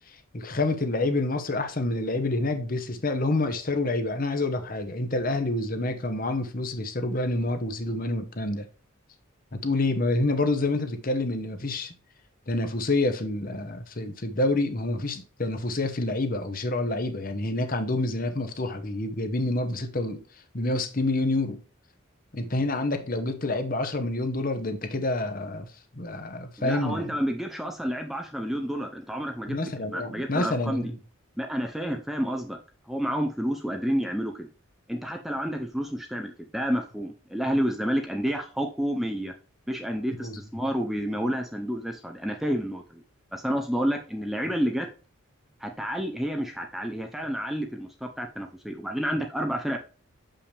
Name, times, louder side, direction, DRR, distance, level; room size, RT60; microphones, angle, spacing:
voice 1, 0.0-8.7 9.5-11.9 12.5-20.2 20.5-21.6 22.3-27.2 29.5-31.0 40.2-40.4, left 2 dB, 40° left, 1.0 m, -28 dB
voice 2, 26.6-29.6 29.9-30.9 31.4-32.6 32.9-34.5 34.9-39.3 39.7-43.0 43.3-44.9 45.6-49.8, equal, ahead, 0.5 m, -29 dB
6.9 x 5.7 x 3.3 m
head